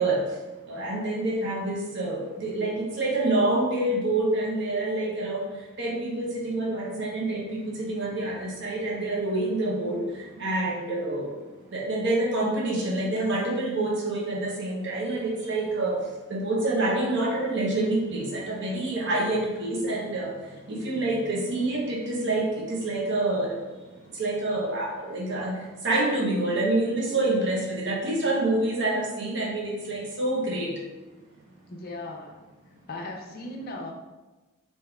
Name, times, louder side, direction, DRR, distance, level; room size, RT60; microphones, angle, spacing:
voice 1, 0.0-11.3 11.7-30.8, right 2 dB, 55° right, -3 dB, 0.7 m, -27 dB
voice 2, 31.7-32.4 32.9-33.9, left 2 dB, 45° left, 1 dB, 0.5 m, -37 dB
3.5 x 2.8 x 3.4 m, 1.2 s
head